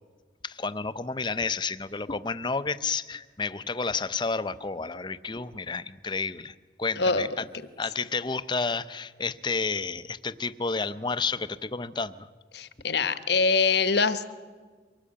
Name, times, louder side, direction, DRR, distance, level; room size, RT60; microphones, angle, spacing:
voice 1, 0.4-7.4 7.8-12.3, left 4 dB, 25° left, 14 dB, 0.6 m, -31 dB
voice 2, 7.0-7.3 12.5-14.4, left 4 dB, 65° left, 12 dB, 1.1 m, -24 dB
24.0 x 18.0 x 8.6 m, 1.5 s
head